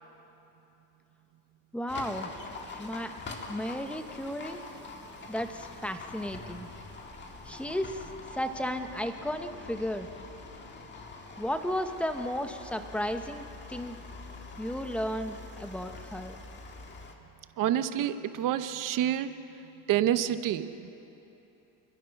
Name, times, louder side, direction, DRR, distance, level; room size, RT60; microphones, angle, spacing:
voice 1, 1.7-2.3 2.8-3.1 3.5-4.6 5.3-6.7 7.5-10.1 11.4-14.0 14.6-16.3, equal, 5° left, 7 dB, 0.9 m, -34 dB
Livestock farm animals working animals, 1.9-17.1, left 3 dB, 30° left, 1.9 m, -45 dB
voice 2, 17.6-19.3 19.9-20.9, right 11 dB, 55° right, 11 dB, 1.0 m, -28 dB
27.0 x 22.0 x 5.9 m, 2.9 s
cardioid pair, 165°, 38 cm